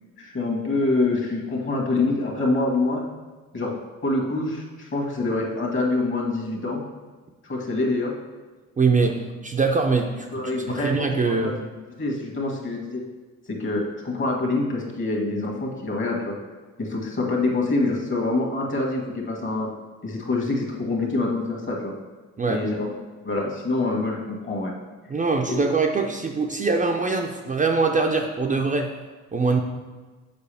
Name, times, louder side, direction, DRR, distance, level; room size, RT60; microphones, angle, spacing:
voice 1, 0.2-3.1 3.5-6.8 7.5-8.1 10.3-11.6 12.0-13.0 13.5-16.3 16.8-19.7 20.0-21.9 22.5-22.9 23.2-24.7 25.5-25.6, left 2 dB, 40° left, 0 dB, 1.7 m, -25 dB
voice 2, 8.8-11.5 22.4-22.6 25.1-28.9 29.3-29.6, right 4 dB, 25° right, 2 dB, 0.6 m, -23 dB
6.9 x 4.8 x 3.4 m, 1.3 s
cardioid pair, 90°, 30 cm